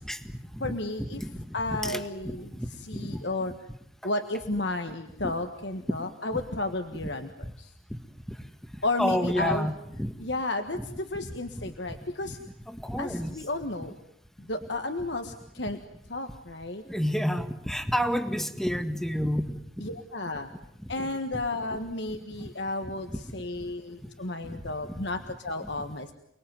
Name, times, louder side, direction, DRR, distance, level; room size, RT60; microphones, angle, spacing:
voice 1, 0.0-1.5 1.8-3.2 5.2-5.3 9.0-10.1 11.6-11.7 12.7-13.4 16.8-19.9 21.0-21.1 22.4-22.5 22.8-23.2 24.4-24.6 25.6-25.7, equal, ahead, 9 dB, 1.7 m, -30 dB
voice 2, 0.6-1.2 1.5-2.5 2.8-3.5 4.0-7.3 7.6-7.7 8.8-9.7 10.2-12.4 13.0-14.0 14.4-15.8 16.1-16.8 19.8-20.5 20.9-26.1, left 2 dB, 65° left, 7 dB, 1.6 m, -32 dB
29.5 x 21.0 x 9.4 m, 0.75 s
head